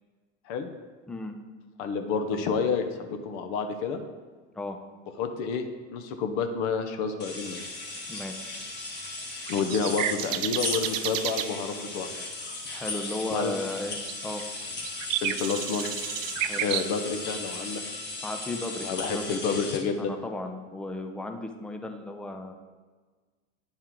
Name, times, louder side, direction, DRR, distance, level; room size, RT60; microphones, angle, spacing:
voice 1, 1.8-4.0 5.2-7.6 9.5-12.1 13.3-13.5 15.2-15.9 16.6-17.8 18.8-20.1, left 5 dB, 55° left, 7 dB, 0.9 m, -29 dB
sound 1, 7.2-19.8, left 3 dB, 25° left, 1.7 m, -37 dB
sound 2, 7.4-7.7 8.9-11.5 13.1-13.2 13.5-13.8 14.1-16.9, right 12 dB, 75° right, 0.5 m, -31 dB
voice 2, 8.1-8.6 12.7-14.4 16.4-16.7 18.2-19.2 20.0-22.5, left 2 dB, 5° left, 5 dB, 0.3 m, -35 dB
9.6 x 4.4 x 3.7 m, 1.4 s
hypercardioid pair, 100°, 39 cm